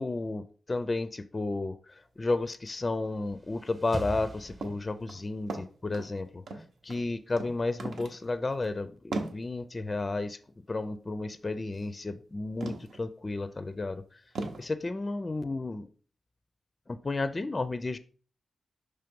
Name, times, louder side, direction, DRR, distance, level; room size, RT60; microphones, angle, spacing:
voice 1, 0.0-6.4 6.8-10.4 10.7-14.2 14.6-15.9 16.9-18.0, left 2 dB, 25° left, 12 dB, 0.4 m, -32 dB
sound 1, 2.9-5.3, right 1 dB, 25° right, 0.9 m, -42 dB
sound 2, 4.6-4.8 5.1-6.1 6.5-7.0 7.4-7.5 7.8-8.2 8.5-8.6 9.1-9.4 11.7-11.9 12.6-13.0 13.5-13.6 14.3-14.6, right 3 dB, 85° right, 1.0 m, -37 dB
5.8 x 3.3 x 5.2 m, 0.40 s
wide cardioid pair, 125°, 0 cm